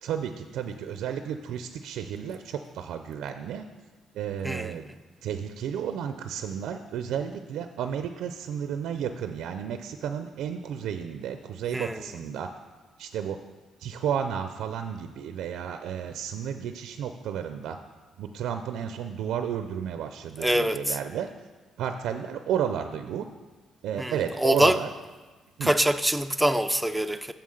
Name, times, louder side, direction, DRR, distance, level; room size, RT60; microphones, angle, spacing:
voice 1, 0.0-3.6 4.1-4.8 5.2-12.5 13.0-13.4 13.8-17.8 18.2-21.3 21.8-23.3 23.8-24.9 25.6-25.7, right 8 dB, 85° right, 0.4 m, -32 dB
voice 2, 4.4-5.0 11.7-12.0 20.4-21.0 24.0-24.8 25.6-27.3, right 1 dB, 5° right, 0.4 m, -25 dB
6.9 x 5.7 x 6.3 m
cardioid pair, 100°, 0 cm